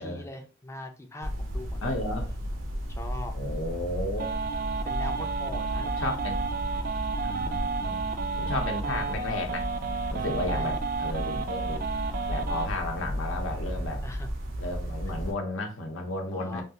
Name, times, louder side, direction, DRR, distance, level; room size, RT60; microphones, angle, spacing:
voice 1, 0.0-1.9 2.2-2.3 2.9-3.3 4.6-5.9 8.0-8.5 10.5-10.7 14.0-14.3 16.3-16.6, left 1 dB, 15° left, 0.4 m, -41 dB
sound 1, 1.2-15.3, equal, 85° right, 0.8 m, -34 dB
voice 2, 1.8-2.3 3.3-4.4 6.0-6.6 7.2-8.0 8.4-9.7 10.1-11.8 12.3-14.0 14.6-16.6, left 2 dB, 80° left, 0.8 m, -33 dB
sound 2, 4.2-12.7, right 5 dB, 45° right, 0.3 m, -32 dB
3.3 x 2.4 x 2.8 m
head